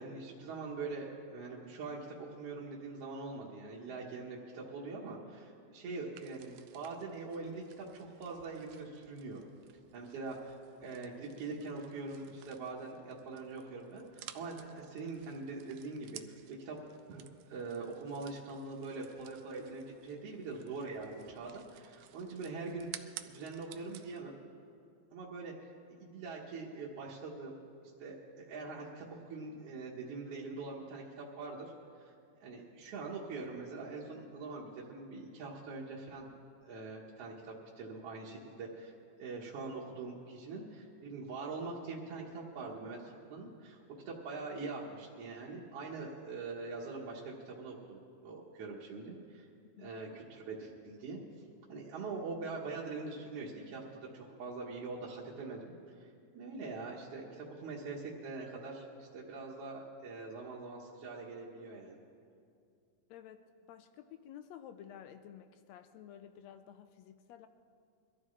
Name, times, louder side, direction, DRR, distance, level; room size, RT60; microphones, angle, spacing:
voice 1, 0.0-9.5 9.9-16.8 17.1-24.4 25.1-25.7 26.0-32.1 32.4-36.3 36.6-43.8 44.1-49.5 49.8-51.2 51.7-56.1 56.3-62.0, right 3 dB, 60° right, -4 dB, 2.0 m, -43 dB
sound 1, 6.1-24.2, right 12 dB, 80° right, 1.6 m, -55 dB
voice 2, 63.1-67.5, left 9 dB, 80° left, 9 dB, 1.7 m, -52 dB
22.5 x 13.5 x 3.2 m, 2.4 s
omnidirectional pair, 3.4 m